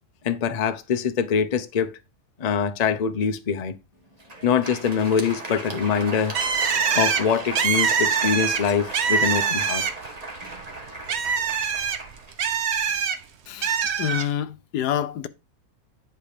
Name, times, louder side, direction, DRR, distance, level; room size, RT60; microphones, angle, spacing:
voice 1, 0.2-1.9 2.4-3.7 4.4-6.4 6.9-9.8, left 6 dB, 40° left, 0.5 m, -24 dB
Crowd, 4.1-13.0, right 2 dB, 25° right, 1.7 m, -37 dB
Bird, 6.3-10.2 10.5-13.2 13.6-14.3, right 6 dB, 50° right, 1.0 m, -24 dB
voice 2, 13.5-15.3, left 10 dB, 85° left, 1.3 m, -27 dB
10.0 x 4.4 x 5.1 m
omnidirectional pair, 1.7 m